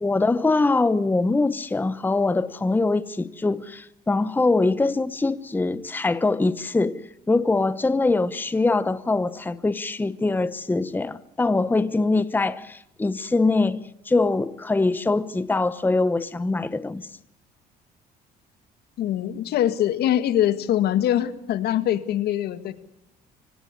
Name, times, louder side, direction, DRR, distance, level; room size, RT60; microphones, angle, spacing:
voice 1, 0.0-17.1, left 3 dB, 10° left, 0.8 m, -23 dB
voice 2, 19.0-22.7, left 11 dB, 70° left, 1.9 m, -23 dB
25.0 x 17.5 x 9.8 m
cardioid pair, 110°, 17 cm